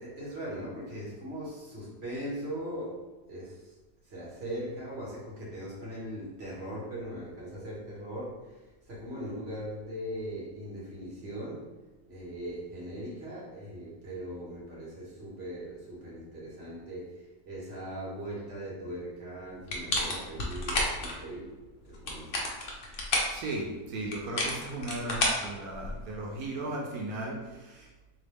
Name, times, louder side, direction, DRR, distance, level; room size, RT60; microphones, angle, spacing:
voice 1, 0.0-3.0 3.3-3.7 4.0-8.6 8.9-11.7 12.1-21.5 21.9-22.5, equal, 45° right, -6 dB, 1.5 m, -40 dB
sound 1, 19.7-21.1 21.9-23.4 24.1-26.1, left 1 dB, 45° left, 0.8 m, -30 dB
voice 2, 23.3-27.9, right 2 dB, 85° right, -2 dB, 1.2 m, -36 dB
4.0 x 3.1 x 3.4 m, 1.1 s
omnidirectional pair, 1.5 m